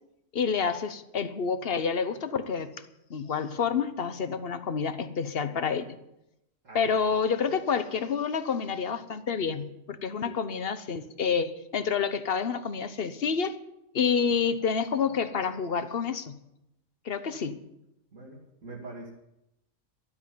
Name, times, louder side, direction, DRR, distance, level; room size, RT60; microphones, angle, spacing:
voice 1, 0.3-2.8 3.1-5.9 6.7-13.6 13.9-16.4 17.0-17.6, left 6 dB, 50° left, 11 dB, 1.1 m, -28 dB
voice 2, 18.1-19.1, right 2 dB, 70° right, -6 dB, 2.8 m, -44 dB
12.5 x 8.5 x 9.5 m, 0.85 s
omnidirectional pair, 1.4 m